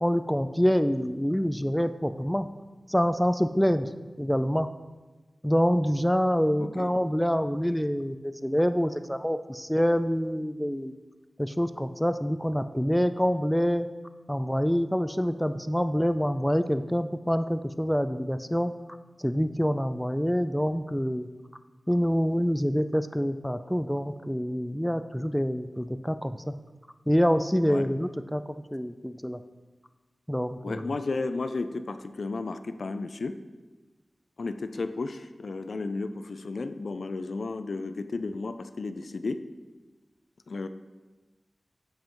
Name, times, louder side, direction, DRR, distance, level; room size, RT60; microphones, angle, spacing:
voice 1, 0.0-2.5 2.9-3.9 4.2-4.7 5.4-10.9 11.4-13.9 14.3-18.7 19.2-21.3 21.9-26.5 27.1-28.4 28.7-29.4 30.3-30.9, equal, 5° left, 10 dB, 0.4 m, -26 dB
voice 2, 6.6-6.9 27.7-27.9 30.6-33.4 34.4-39.4 40.5-40.7, left 3 dB, 80° left, 9 dB, 0.3 m, -33 dB
8.7 x 5.5 x 3.0 m, 1.2 s
cardioid pair, 40°, 0 cm